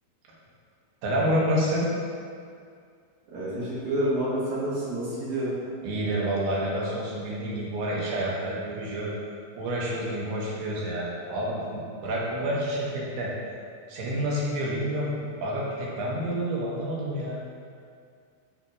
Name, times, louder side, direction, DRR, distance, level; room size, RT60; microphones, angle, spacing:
voice 1, 1.0-1.9 5.8-9.1 9.6-13.3 13.9-15.1 15.4-17.4, right 1 dB, 80° right, -5 dB, 2.9 m, -28 dB
voice 2, 3.3-5.5, right 1 dB, 60° right, -11 dB, 2.7 m, -28 dB
7.4 x 3.0 x 4.8 m, 2.2 s
omnidirectional pair, 4.2 m